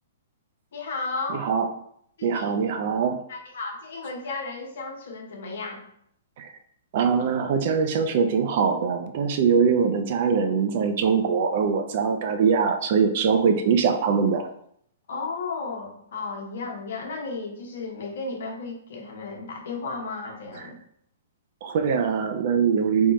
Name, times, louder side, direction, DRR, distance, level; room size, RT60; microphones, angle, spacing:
voice 1, 0.7-1.5 2.2-2.5 3.3-5.8 15.1-20.8, left 3 dB, 70° left, 1 dB, 1.0 m, -34 dB
voice 2, 2.2-3.2 6.4-6.5 6.9-14.5 21.6-23.1, right 6 dB, 55° right, 6 dB, 0.6 m, -22 dB
3.6 x 2.3 x 4.1 m, 0.69 s
hypercardioid pair, 140°, 0 cm